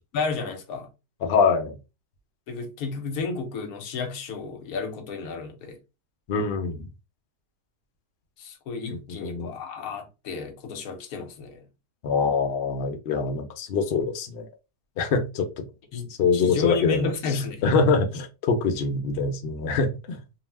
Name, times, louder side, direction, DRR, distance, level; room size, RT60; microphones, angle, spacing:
voice 1, 0.1-0.9 2.5-5.8 8.4-11.6 15.9-17.6, left 4 dB, 70° left, 1.1 m, -32 dB
voice 2, 1.2-1.8 6.3-6.9 9.2-9.5 12.0-14.5 15.0-15.6 16.2-20.2, left 4 dB, 90° left, 0.5 m, -24 dB
2.7 x 2.0 x 3.2 m
omnidirectional pair, 1.7 m